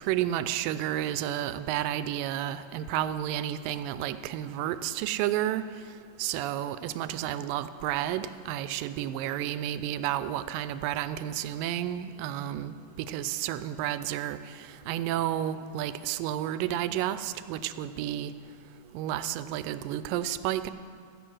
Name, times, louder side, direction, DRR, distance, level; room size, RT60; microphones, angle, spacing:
voice 1, 0.1-5.6 6.2-12.8 13.1-14.4 14.9-18.3 18.9-20.7, right 12 dB, 85° right, 13 dB, 2.2 m, -31 dB
15.0 x 7.8 x 6.3 m, 2.3 s
omnidirectional pair, 3.9 m